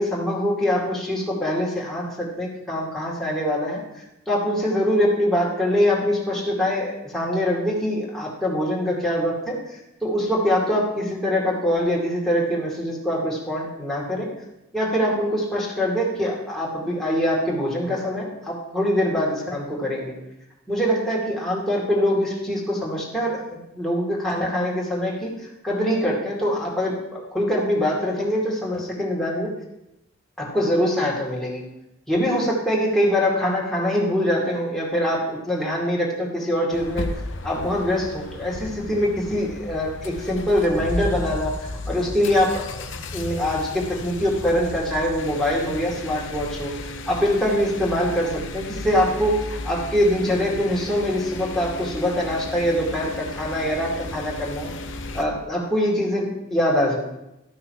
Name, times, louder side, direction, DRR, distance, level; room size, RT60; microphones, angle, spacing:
voice 1, 0.0-14.3 14.7-20.1 20.7-25.3 25.6-29.5 30.4-31.6 32.1-37.1 37.4-42.8 43.1-46.7 47.1-54.7 55.1-57.0, equal, ahead, -5 dB, 2.3 m, -23 dB
sound 1, 36.7-55.3, left 2 dB, 60° left, 0.8 m, -34 dB
13.0 x 6.1 x 4.7 m, 0.88 s
head